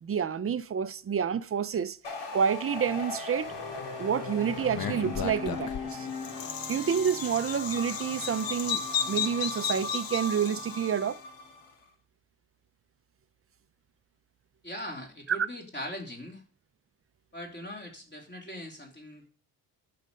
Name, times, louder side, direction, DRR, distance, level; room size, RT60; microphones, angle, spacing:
voice 1, 0.0-2.0 2.3-3.5 4.0-6.1 6.7-11.2 15.3-15.4, right 7 dB, 30° right, 0.6 m, -29 dB
sound 1, 2.0-11.7, left 3 dB, 70° left, 2.7 m, -38 dB
Bird vocalization bird call bird song, 4.7-11.0, left 8 dB, 50° left, 1.1 m, -34 dB
voice 2, 14.6-16.4 17.3-19.3, equal, 25° left, 3.2 m, -40 dB
11.0 x 6.7 x 5.3 m
cardioid pair, 120°, 44 cm